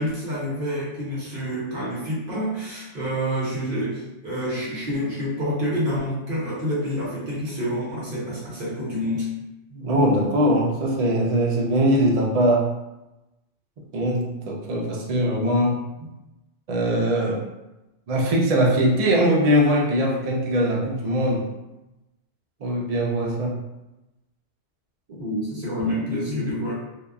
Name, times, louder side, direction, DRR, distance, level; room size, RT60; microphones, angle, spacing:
voice 1, 0.0-9.3 25.2-26.7, equal, 50° right, -6 dB, 1.0 m, -28 dB
voice 2, 9.7-12.7 13.9-16.1 16.7-17.4 18.1-21.4 22.6-23.6 25.1-25.2, equal, 75° right, -2 dB, 0.3 m, -21 dB
2.8 x 2.2 x 2.2 m, 0.98 s
omnidirectional pair, 1.2 m